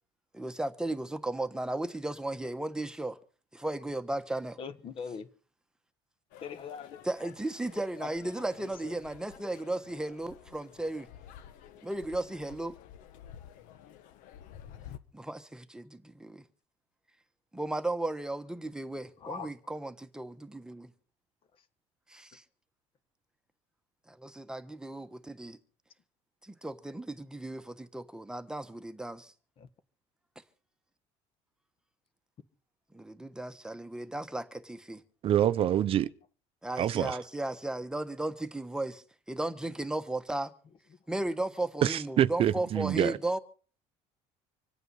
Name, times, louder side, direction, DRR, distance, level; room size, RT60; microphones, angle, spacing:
voice 1, 0.3-3.2 3.5-4.6 7.0-11.1 11.8-12.7 15.1-16.4 17.5-20.9 22.1-22.4 24.1-25.6 26.4-29.3 32.9-35.0 36.6-40.5 41.1-43.4, right 2 dB, 5° right, 1.2 m, -35 dB
voice 2, 4.6-5.3 6.4-7.0 8.0-8.1 8.6-8.9 19.2-19.5 29.6-29.7, left 6 dB, 40° left, 1.6 m, -41 dB
sound 1, 6.3-15.0, left 10 dB, 75° left, 1.4 m, -51 dB
voice 3, 35.2-36.1 36.8-37.2 41.8-43.2, right 11 dB, 45° right, 0.7 m, -26 dB
26.0 x 9.0 x 5.5 m
cardioid pair, 135°, 14 cm